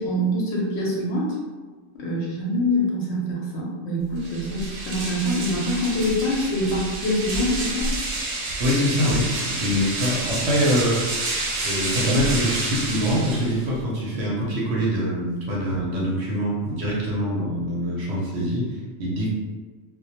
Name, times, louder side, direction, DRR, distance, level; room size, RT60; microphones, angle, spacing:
voice 1, 0.0-1.4 1.9-7.9, equal, 65° left, -4 dB, 0.8 m, -25 dB
sound 1, 4.2-13.8, right 2 dB, 85° right, 1.0 m, -29 dB
voice 2, 8.6-11.1 11.6-19.3, equal, 65° right, -4 dB, 0.8 m, -24 dB
2.1 x 2.1 x 2.8 m, 1.4 s
omnidirectional pair, 1.4 m